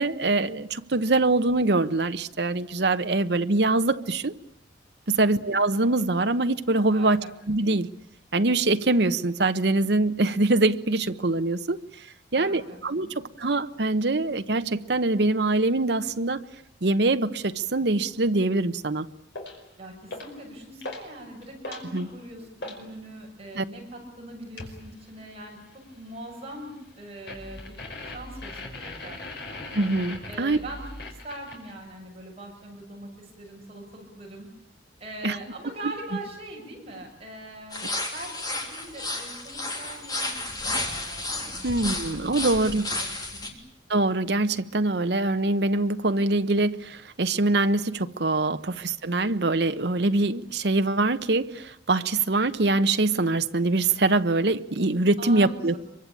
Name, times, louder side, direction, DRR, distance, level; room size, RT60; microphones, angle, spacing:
voice 1, 0.0-4.3 5.1-7.9 8.3-11.8 12.3-16.4 16.8-19.1 21.9-22.1 23.5-23.6 29.7-30.6 35.2-35.4 41.6-42.9 43.9-55.7, right 2 dB, 60° right, 1.0 m, -24 dB
voice 2, 5.1-5.4 6.9-7.3 12.3-13.2 19.8-29.2 29.5-29.7 30.3-34.5 35.0-37.9 38.1-42.0 42.3-43.6 55.2-55.8, right 1 dB, 35° right, 7.2 m, -42 dB
sound 1, 19.3-19.6 20.1-20.4 20.8-21.1 21.4-22.8 24.6-24.8 27.3-31.7, left 2 dB, 60° left, 5.3 m, -39 dB
sound 2, 37.7-43.5, left 2 dB, 20° left, 3.3 m, -32 dB
25.5 x 23.5 x 8.6 m
head